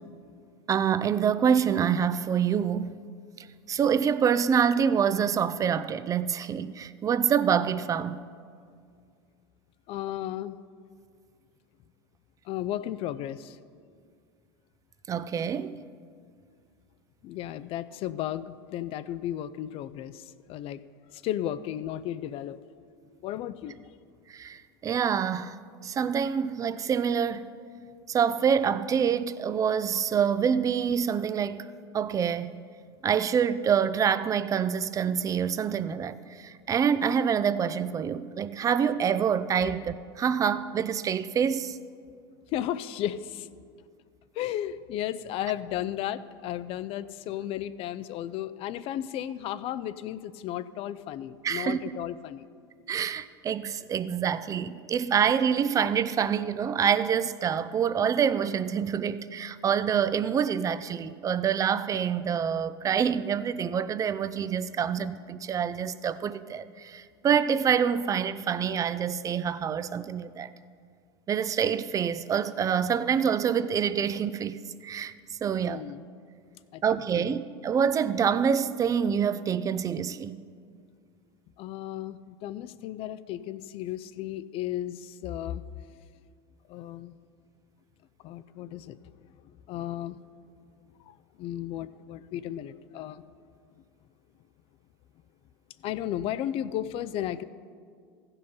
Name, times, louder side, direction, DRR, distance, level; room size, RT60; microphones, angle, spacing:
voice 1, 0.7-2.9 3.7-8.2 15.1-15.8 24.3-25.6 25.8-27.5 28.1-31.7 31.9-32.5 33.0-41.8 51.4-51.8 52.9-70.5 71.3-75.1 75.4-75.8 76.8-80.4, right 7 dB, 25° right, 0.4 m, -26 dB
voice 2, 9.9-10.6 12.4-13.6 17.2-20.8 21.1-22.6 23.2-23.8 42.5-43.5 44.4-52.5 75.6-76.0 76.7-77.3 81.6-85.7 86.7-87.2 88.2-89.2 89.7-90.2 91.1-93.2 95.8-97.4, left 12 dB, 45° left, 0.4 m, -34 dB
15.5 x 5.4 x 5.5 m
hypercardioid pair, 95°, 13 cm